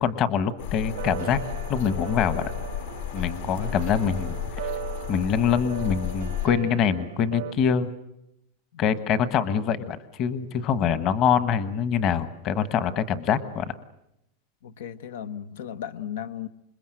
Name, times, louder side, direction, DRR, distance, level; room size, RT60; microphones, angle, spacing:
voice 1, 0.0-1.4 1.7-2.5 3.1-4.4 5.1-7.9 8.8-13.7, left 7 dB, 30° left, 1.3 m, -24 dB
sound 1, 0.6-6.5, left 10 dB, 60° left, 2.1 m, -33 dB
sound 2, 0.8-7.5, right 13 dB, 70° right, 0.9 m, -38 dB
voice 2, 14.6-16.5, left 9 dB, 80° left, 1.2 m, -36 dB
27.0 x 22.0 x 7.8 m
supercardioid pair, 170°, 0 cm